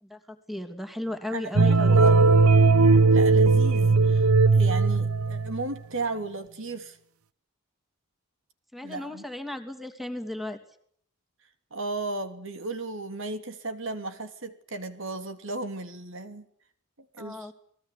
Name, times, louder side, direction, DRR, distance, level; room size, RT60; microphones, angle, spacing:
voice 1, 0.0-2.1 8.7-10.6 17.2-17.5, left 1 dB, ahead, 8 dB, 2.7 m, -35 dB
voice 2, 1.3-2.4 3.1-4.3 4.5-7.0 8.8-9.2 11.7-16.4 17.2-17.5, right 3 dB, 60° right, 9 dB, 2.9 m, -35 dB
sound 1, 1.6-5.7, right 3 dB, 85° right, 1.1 m, -18 dB
30.0 x 20.5 x 8.4 m, 0.64 s
head